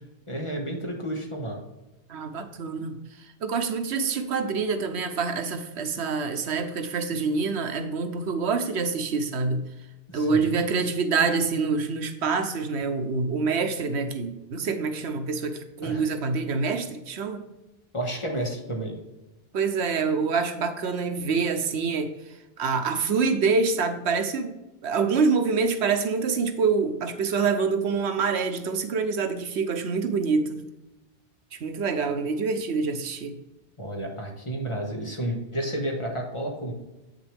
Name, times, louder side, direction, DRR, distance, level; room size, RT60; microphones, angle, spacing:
voice 1, 0.3-1.6 10.1-10.5 15.8-16.0 17.9-19.0 33.8-36.7, right 1 dB, 30° left, 0 dB, 1.6 m, -31 dB
voice 2, 2.1-9.7 10.1-17.5 19.5-24.6 24.8-30.6 31.5-33.4, right 4 dB, 85° right, 8 dB, 1.1 m, -26 dB
8.2 x 6.4 x 3.4 m, 0.99 s
omnidirectional pair, 1.1 m